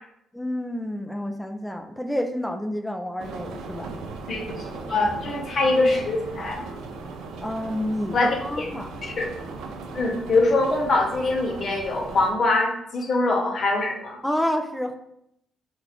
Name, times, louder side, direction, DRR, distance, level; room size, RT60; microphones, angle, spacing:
voice 1, 0.3-3.9 4.9-5.1 7.4-8.9 14.2-15.0, left 1 dB, 5° left, 5 dB, 0.4 m, -29 dB
sound 1, 3.2-12.3, right 3 dB, 85° right, 0.4 m, -38 dB
voice 2, 4.3-6.7 8.1-8.7 9.0-9.3 9.9-14.2, left 2 dB, 50° left, 1 dB, 0.8 m, -23 dB
3.8 x 2.4 x 3.0 m, 0.77 s
cardioid pair, 90°, 0 cm